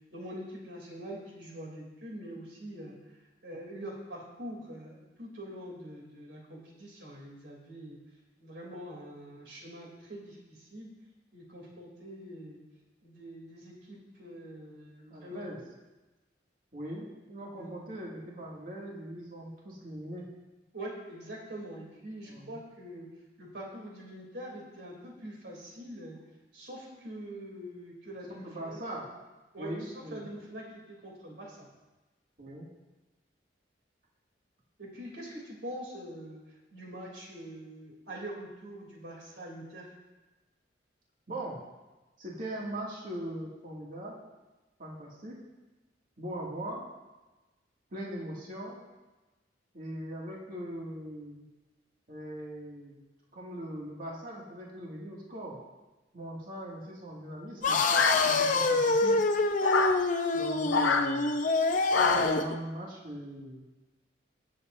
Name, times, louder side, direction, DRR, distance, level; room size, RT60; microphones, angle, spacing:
voice 1, 0.1-2.9 3.4-8.0 8.4-10.9 11.3-12.6 13.0-15.6 17.6-17.8 20.7-23.1 23.4-26.2 26.5-29.0 29.5-30.6 31.0-31.7 34.8-36.4 36.7-39.9, right 1 dB, 70° right, -2 dB, 3.1 m, -44 dB
voice 2, 15.1-15.6 16.7-20.3 22.3-22.5 28.4-29.0 29.6-30.3 32.4-32.7 41.3-41.6 42.2-44.1 44.8-45.4 46.2-46.8 47.9-48.8 49.7-51.5 52.1-53.0 53.3-55.6 56.1-57.8 58.2-59.1 60.3-61.3 62.1-63.7, right 1 dB, 50° right, -4 dB, 2.4 m, -40 dB
sound 1, 57.6-62.6, left 3 dB, 45° left, 0.6 m, -26 dB
sound 2, 57.9-58.7 59.6-60.0 60.7-61.1 61.9-62.4, left 4 dB, 90° left, 0.7 m, -27 dB
20.5 x 7.7 x 2.7 m, 1.1 s
head